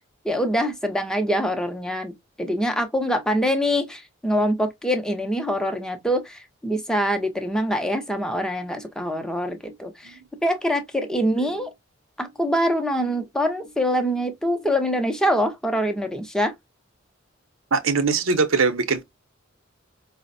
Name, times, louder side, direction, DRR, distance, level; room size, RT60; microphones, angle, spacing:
voice 1, 0.2-2.1 2.4-11.7 12.2-16.5, equal, 5° left, 0.6 m, -24 dB
voice 2, 17.7-19.0, right 4 dB, 80° right, 0.7 m, -22 dB
4.9 x 2.0 x 2.5 m
head